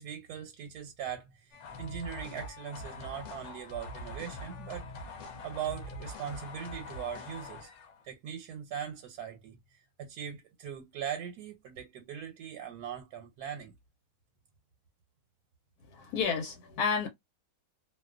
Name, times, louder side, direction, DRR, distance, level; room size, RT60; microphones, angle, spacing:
voice 1, 0.0-4.8 5.4-7.7 8.0-13.7, right 8 dB, 85° right, 1.1 m, -40 dB
sound 1, 1.5-8.0, left 2 dB, 60° left, 0.9 m, -44 dB
voice 2, 15.9-17.1, left 6 dB, 85° left, 1.1 m, -31 dB
2.6 x 2.2 x 2.3 m
omnidirectional pair, 1.6 m